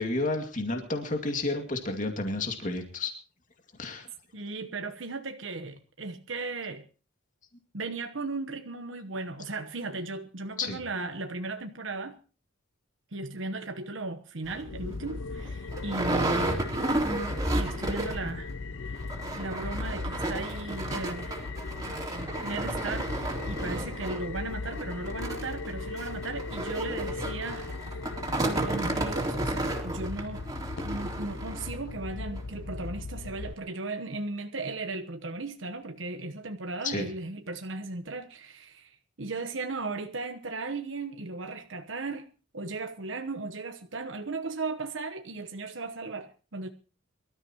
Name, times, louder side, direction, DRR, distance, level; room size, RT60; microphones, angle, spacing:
voice 1, 0.0-3.1 3.8-4.1 10.6-10.8 36.8-37.0, left 2 dB, 40° left, 2.3 m, -31 dB
voice 2, 4.3-6.8 7.7-12.2 13.1-16.6 17.5-18.5 18.8-21.5 22.1-28.0 28.4-30.4 30.8-42.3 42.5-46.7, right 3 dB, 75° right, 1.1 m, -36 dB
sound 1, 14.5-14.6 15.1-15.2 15.4-18.3 18.6-18.7 19.0-31.8 32.4-32.5 32.8-32.9, right 1 dB, 20° right, 3.5 m, -32 dB
sound 2, 14.6-33.5, left 3 dB, 70° left, 0.7 m, -38 dB
24.0 x 13.5 x 3.0 m
head